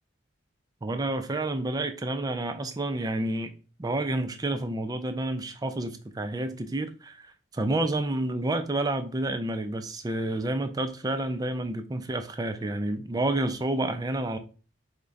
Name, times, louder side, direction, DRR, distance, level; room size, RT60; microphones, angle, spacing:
voice 1, 0.8-3.5 3.8-14.4, right 2 dB, 20° right, 0.3 m, -29 dB
5.1 x 2.2 x 3.5 m
head